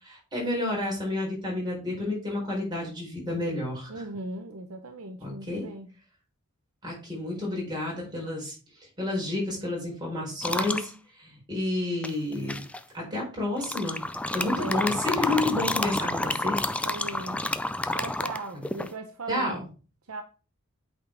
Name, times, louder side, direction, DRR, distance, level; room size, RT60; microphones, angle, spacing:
voice 1, 0.0-4.0 5.2-5.7 6.8-8.5 9.0-10.9 11.2-12.6 12.9-14.0 14.3-16.6 18.5-18.7 19.3-19.7, left 2 dB, 20° right, 4.4 m, -30 dB
voice 2, 3.9-5.9 14.4-14.8 16.8-17.4 17.9-19.7 20.1-20.2, right 2 dB, 75° right, 0.8 m, -38 dB
sound 1, 10.4-10.9 12.0-12.8 13.6-18.9, left 2 dB, 5° left, 0.3 m, -29 dB
8.2 x 4.3 x 4.6 m
head